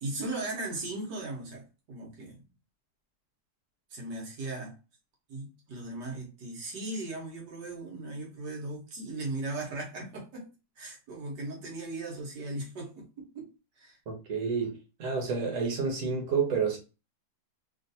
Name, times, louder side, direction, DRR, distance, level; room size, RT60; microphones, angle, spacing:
voice 1, 0.0-2.5 3.9-4.8 5.3-10.5 10.8-13.5 13.8-14.0, right 2 dB, 80° right, 1.7 m, -38 dB
voice 2, 14.1-16.8, right 5 dB, 50° right, 1.3 m, -30 dB
3.5 x 2.5 x 2.6 m
omnidirectional pair, 1.8 m